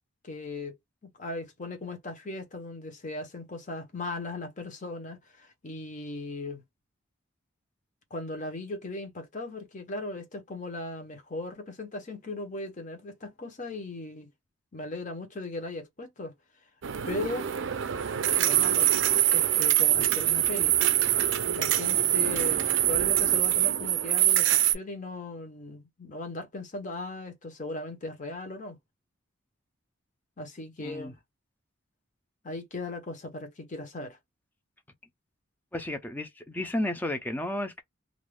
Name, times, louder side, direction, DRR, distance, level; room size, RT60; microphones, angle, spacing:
voice 1, 0.2-0.8 1.2-6.6 8.1-14.3 14.7-16.3 17.1-17.5 18.3-18.9 19.3-20.7 21.5-28.8 30.4-31.2 32.4-34.2, left 2 dB, 35° left, 0.8 m, -38 dB
sound 1, 16.8-24.7, right 12 dB, 60° right, 0.4 m, -24 dB
voice 2, 30.8-31.1 35.7-37.8, left 1 dB, 10° left, 0.5 m, -32 dB
2.5 x 2.3 x 3.2 m
head